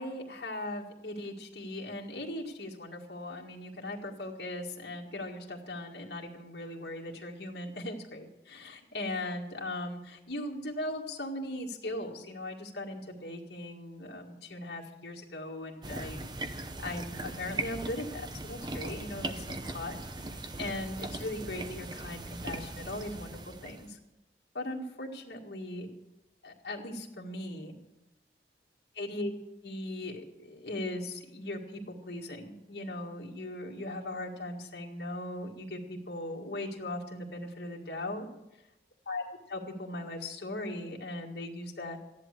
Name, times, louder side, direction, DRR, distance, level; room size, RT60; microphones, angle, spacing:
voice 1, 0.0-16.2 16.5-24.0 24.5-25.9 26.4-27.7 29.0-29.3 29.6-38.3 39.1-42.0, left 1 dB, 70° left, -1 dB, 1.9 m, -39 dB
sound 1, 15.8-23.9, right 2 dB, 25° right, 0.7 m, -39 dB
14.0 x 10.5 x 6.6 m, 0.93 s
head